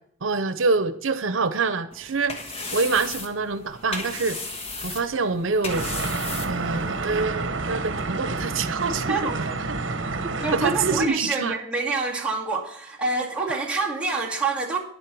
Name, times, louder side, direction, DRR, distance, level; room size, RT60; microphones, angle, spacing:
voice 1, 0.2-2.4 2.7-4.4 4.8-5.9 6.5-9.3 10.5-11.6, right 4 dB, 90° right, 12 dB, 0.7 m, -25 dB
sound 1, 1.9-7.0, left 3 dB, 30° left, 1.4 m, -35 dB
sound 2, 5.7-11.1, right 3 dB, 70° right, 1.0 m, -29 dB
voice 2, 10.4-14.8, right 3 dB, 5° right, -5 dB, 2.3 m, -27 dB
10.0 x 8.0 x 6.1 m, 0.65 s
head